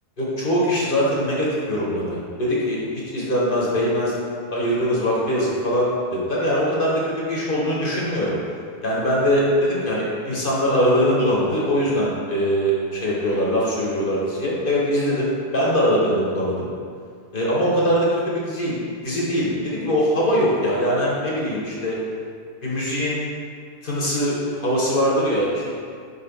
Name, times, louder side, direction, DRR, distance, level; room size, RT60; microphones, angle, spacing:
voice 1, 0.2-4.1 4.5-8.3 8.8-15.3 15.5-16.7 17.3-18.8 19.0-22.0 22.6-23.2 23.8-25.6, equal, 40° left, -5 dB, 1.1 m, -22 dB
5.2 x 4.1 x 5.2 m, 2.1 s
omnidirectional pair, 1.7 m